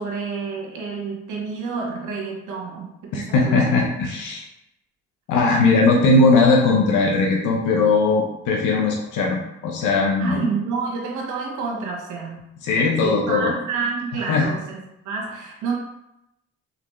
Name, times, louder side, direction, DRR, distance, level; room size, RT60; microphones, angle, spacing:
voice 1, 0.0-3.6 10.2-12.4 13.0-15.8, right 4 dB, 85° right, -1 dB, 1.2 m, -29 dB
voice 2, 3.1-4.4 5.3-10.4 12.6-13.5 14.3-14.5, left 3 dB, 90° left, -1 dB, 0.8 m, -19 dB
4.1 x 3.3 x 3.1 m, 0.86 s
cardioid pair, 90°, 30 cm